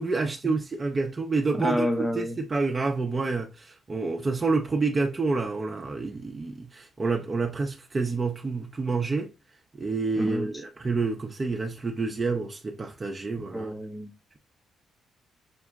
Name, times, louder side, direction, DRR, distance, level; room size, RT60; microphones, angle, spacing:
voice 1, 0.0-9.3 9.8-13.7, right 3 dB, 30° right, 0.6 m, -28 dB
voice 2, 1.5-2.4 10.2-10.5 13.5-14.1, equal, 5° left, 0.7 m, -29 dB
5.8 x 2.1 x 3.5 m
cardioid pair, 90°, 0 cm